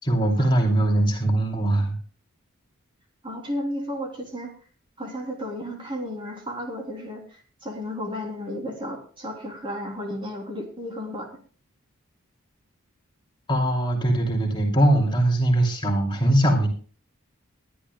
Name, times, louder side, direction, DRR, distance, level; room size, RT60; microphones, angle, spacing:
voice 1, 0.0-2.0 13.5-16.7, right 1 dB, 20° left, 0 dB, 2.9 m, -21 dB
voice 2, 3.2-4.5 5.0-11.3, equal, 25° right, 1 dB, 3.4 m, -33 dB
22.0 x 12.0 x 2.3 m, 0.40 s
head